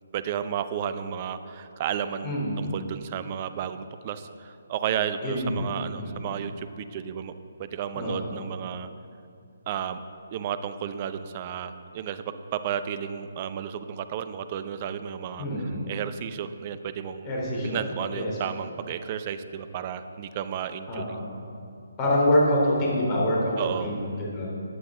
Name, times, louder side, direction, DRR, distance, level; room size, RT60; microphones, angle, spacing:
voice 1, 0.1-7.3 7.6-8.9 9.7-10.0 10.3-17.3 17.6-21.2 23.6-23.9, right 8 dB, 30° right, 11 dB, 0.6 m, -33 dB
voice 2, 2.2-2.7 5.2-6.2 8.0-8.3 15.4-15.8 17.2-17.8 18.1-18.3 20.9-21.3 22.0-24.5, left 1 dB, 25° left, -4 dB, 3.5 m, -26 dB
16.0 x 9.7 x 3.8 m, 2.4 s
figure-of-eight pair, 140°, 0 cm